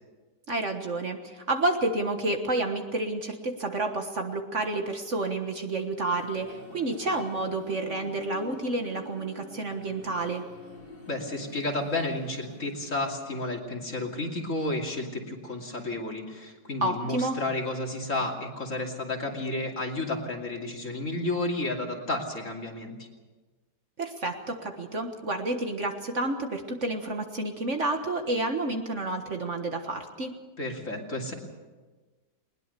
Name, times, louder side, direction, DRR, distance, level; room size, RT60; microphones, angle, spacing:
voice 1, 0.5-10.4 16.8-17.4 24.0-30.3, right 2 dB, 45° right, 5 dB, 1.7 m, -30 dB
sound 1, 5.8-13.5, left 2 dB, 90° left, 5.4 m, -47 dB
voice 2, 11.1-23.1 30.6-31.3, left 2 dB, 45° left, 1 dB, 3.0 m, -32 dB
20.5 x 20.5 x 6.8 m, 1.3 s
omnidirectional pair, 1.9 m